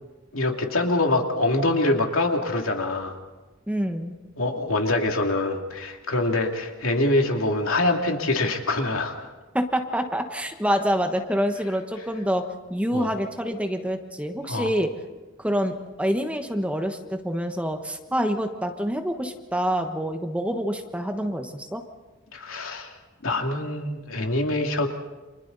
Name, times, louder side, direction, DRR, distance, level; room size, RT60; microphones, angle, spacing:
voice 1, 0.3-3.2 4.4-9.2 12.9-13.1 14.5-14.7 22.3-22.9 23.2-24.9, left 2 dB, 85° left, 2 dB, 2.6 m, -24 dB
voice 2, 3.7-4.1 9.5-12.4 12.7-14.9 15.4-21.8, equal, 5° right, 5 dB, 1.2 m, -26 dB
29.5 x 26.0 x 4.1 m, 1.2 s
head